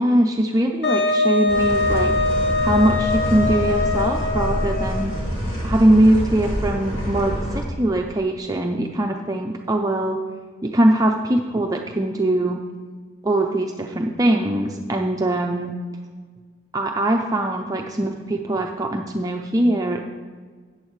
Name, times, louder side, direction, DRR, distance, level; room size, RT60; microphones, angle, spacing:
voice 1, 0.0-2.1 2.6-5.1 5.6-10.2 10.6-12.6 13.2-15.8 16.7-20.0, right 1 dB, 20° right, 2 dB, 0.5 m, -21 dB
Wind instrument woodwind instrument, 0.8-5.2, left 2 dB, 65° left, 1.2 m, -22 dB
sound 1, 1.5-7.6, equal, 35° left, 2.9 m, -26 dB
13.5 x 8.7 x 3.2 m, 1.5 s
head